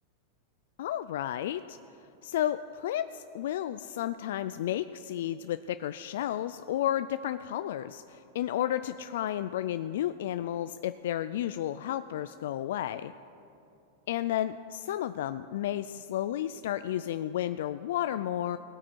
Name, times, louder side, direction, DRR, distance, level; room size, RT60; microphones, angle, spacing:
voice 1, 0.8-1.8 2.2-13.1 14.1-18.6, left 12 dB, 75° left, 11 dB, 0.3 m, -32 dB
19.0 x 8.6 x 4.5 m, 2.8 s
supercardioid pair, 150°, 0 cm